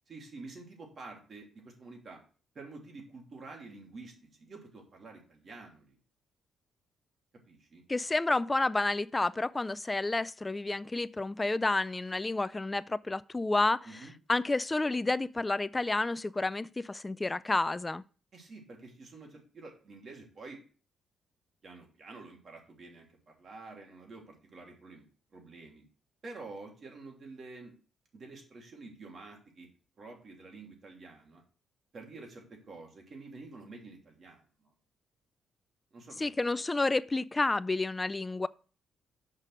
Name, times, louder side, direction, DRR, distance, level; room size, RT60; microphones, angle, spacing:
voice 1, 0.1-2.2 2.5-6.0 7.5-7.8 13.8-14.1 18.3-20.6 21.6-25.0 25.3-25.8 26.2-27.8 28.1-29.7 30.0-31.4 31.9-34.4 35.9-36.3, right 3 dB, 45° right, 3.0 m, -48 dB
voice 2, 7.9-14.0 14.3-18.0 36.2-38.5, left 2 dB, 20° left, 0.4 m, -30 dB
6.7 x 5.6 x 6.1 m
cardioid pair, 90°, 0 cm